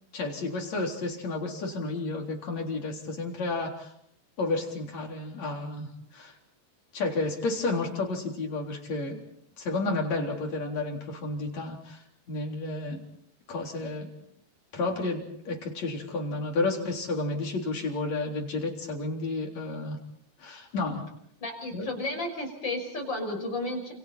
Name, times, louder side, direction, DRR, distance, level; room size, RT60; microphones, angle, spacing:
voice 1, 0.1-3.9 4.4-6.4 6.9-9.2 9.6-13.0 13.5-14.1 14.7-20.0 20.4-21.0 21.7-21.9, left 3 dB, 55° left, 0 dB, 5.0 m, -31 dB
voice 2, 21.4-23.9, left 2 dB, 30° left, 3 dB, 6.3 m, -33 dB
29.0 x 28.5 x 4.3 m, 0.69 s
omnidirectional pair, 3.8 m